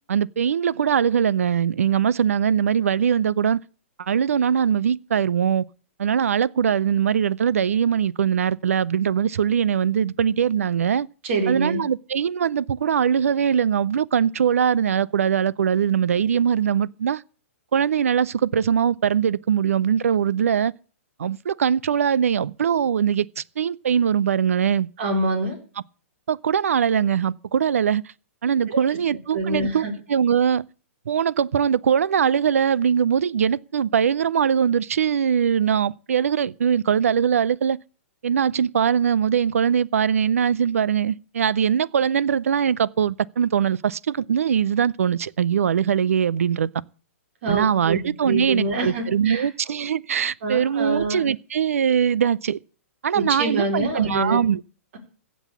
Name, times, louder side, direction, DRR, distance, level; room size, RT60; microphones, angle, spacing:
voice 1, 0.1-3.6 4.0-5.7 6.0-11.1 11.5-17.2 17.7-20.7 21.2-24.9 26.3-28.0 28.4-30.6 31.1-37.8 38.2-46.7 47.5-52.6 53.0-54.6, right 8 dB, 80° right, 0.6 m, -21 dB
voice 2, 11.2-11.8 25.0-25.6 28.7-28.8 29.3-29.9 47.4-49.5 50.4-51.2 53.1-54.4, right 2 dB, 60° right, 4.5 m, -25 dB
16.0 x 6.2 x 8.3 m
hypercardioid pair, 130°, 8 cm